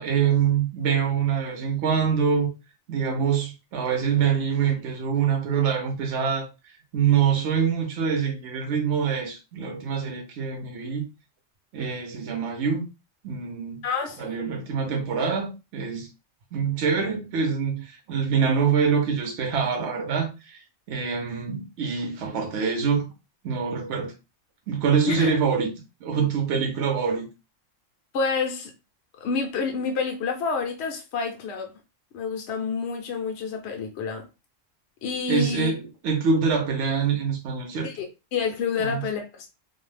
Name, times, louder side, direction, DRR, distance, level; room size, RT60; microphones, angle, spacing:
voice 1, 0.0-2.5 2.9-6.5 6.9-11.0 11.7-12.9 13.2-13.8 14.2-16.1 16.5-20.6 20.9-23.1 23.4-24.1 24.7-25.7 26.0-27.3 35.3-37.9 38.8-39.0, right 6 dB, 65° right, 0.9 m, -25 dB
voice 2, 13.8-14.4 25.1-25.3 28.1-28.7 29.2-31.7 32.1-34.3 35.0-35.7 37.8-39.5, left 5 dB, 65° left, 0.8 m, -28 dB
2.5 x 2.1 x 3.2 m
omnidirectional pair, 1.3 m